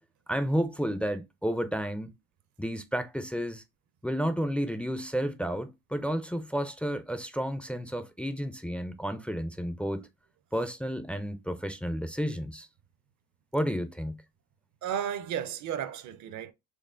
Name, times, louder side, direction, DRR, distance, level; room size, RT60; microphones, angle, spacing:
voice 1, 0.3-2.1 2.6-3.6 4.0-10.1 10.5-12.7 13.5-14.2, equal, 5° left, 0.3 m, -31 dB
voice 2, 14.8-16.5, right 9 dB, 55° right, 0.6 m, -33 dB
4.4 x 2.8 x 2.4 m
supercardioid pair, 100°, 37 cm